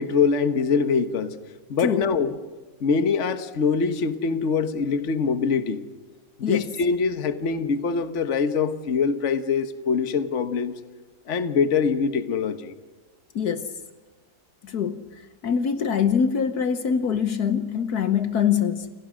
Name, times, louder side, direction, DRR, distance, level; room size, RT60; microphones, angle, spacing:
voice 1, 0.0-1.3 1.7-2.3 2.8-5.8 6.4-10.7 11.3-12.7, left 5 dB, 45° left, 10 dB, 1.4 m, -23 dB
voice 2, 6.4-6.7 13.3-13.7 14.6-18.9, left 7 dB, 65° left, 10 dB, 1.5 m, -24 dB
29.5 x 28.0 x 6.3 m, 1.2 s
omnidirectional pair, 1.8 m